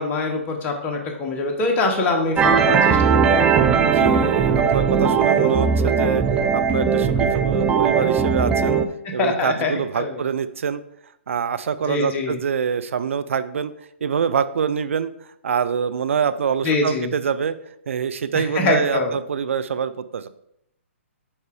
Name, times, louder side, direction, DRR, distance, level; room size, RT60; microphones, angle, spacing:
voice 1, 0.0-3.6 9.0-10.2 11.8-12.4 16.6-17.1 18.3-19.1, left 3 dB, 25° left, 2 dB, 1.2 m, -24 dB
sound 1, 2.4-8.9, right 6 dB, 15° right, 0.4 m, -18 dB
voice 2, 3.8-6.2 6.5-8.8 9.1-10.8 11.3-13.7 14.0-15.1 15.4-17.6 17.9-20.3, right 7 dB, 70° right, 13 dB, 0.5 m, -25 dB
5.5 x 4.8 x 4.8 m, 0.76 s
hypercardioid pair, 135°, 7 cm